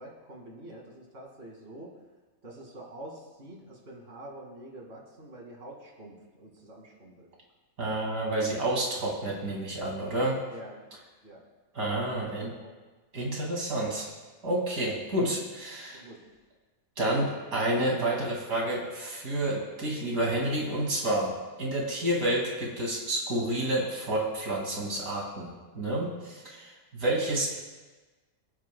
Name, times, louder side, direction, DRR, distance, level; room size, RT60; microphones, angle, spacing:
voice 1, 0.0-1.9 2.4-7.3 10.5-10.8 11.2-11.4 12.1-12.3 12.5-12.7 15.1-15.4 15.9-16.2, right 1 dB, 45° right, -2 dB, 2.5 m, -46 dB
voice 2, 7.8-10.4 11.7-12.5 13.1-14.1 14.4-16.0 17.0-27.5, right 1 dB, 80° right, -2 dB, 2.9 m, -29 dB
26.5 x 9.4 x 2.3 m, 1.2 s
omnidirectional pair, 1.5 m